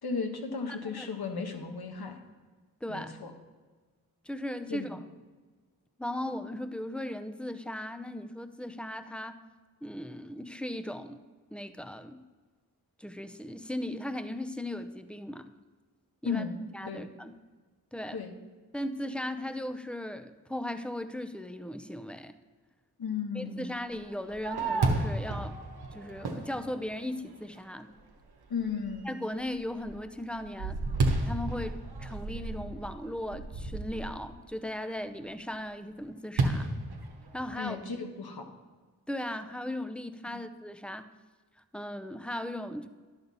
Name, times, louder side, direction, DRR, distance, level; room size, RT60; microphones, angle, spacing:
voice 1, 0.0-2.2 2.9-3.3 4.7-5.0 16.2-16.5 16.8-17.0 18.1-18.3 23.0-23.7 28.5-29.1 37.6-38.4 40.3-40.4, left 5 dB, 80° left, 4 dB, 1.3 m, -35 dB
voice 2, 4.3-5.0 6.0-9.4 9.8-11.2 11.5-12.2 13.0-15.5 16.2-16.4 16.7-17.3 17.9-18.2 18.7-22.3 23.3-25.6 25.9-27.9 29.1-30.8 31.2-36.7 37.3-37.8 39.1-41.1 41.7-42.9, left 1 dB, 5° left, 10 dB, 0.7 m, -37 dB
Fireworks, 24.0-27.5 28.0-28.1 28.6-29.0 29.4-34.3 36.4-37.7, right 3 dB, 85° right, 1.1 m, -32 dB
11.0 x 6.9 x 4.1 m, 1.4 s
cardioid pair, 40°, 37 cm